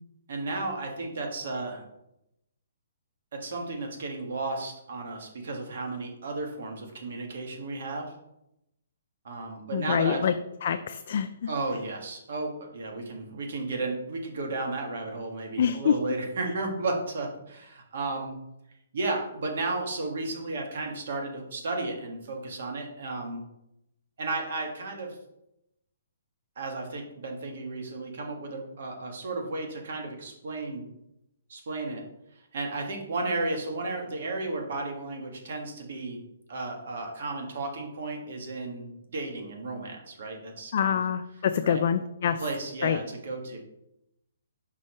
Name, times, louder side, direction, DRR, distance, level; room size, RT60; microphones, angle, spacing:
voice 1, 0.3-1.8 3.3-8.1 9.2-10.2 11.5-18.4 18.9-23.4 24.2-25.2 26.5-30.9 31.5-32.0 32.5-36.2 36.5-41.0 41.6-41.8 42.4-43.6, right 2 dB, 65° right, 2 dB, 1.6 m, -33 dB
voice 2, 9.7-10.3 10.6-11.5 15.6-16.0 40.7-42.4 42.8-43.0, left 8 dB, 55° left, 8 dB, 0.3 m, -26 dB
5.4 x 5.0 x 4.2 m, 0.85 s
hypercardioid pair, 155°, 0 cm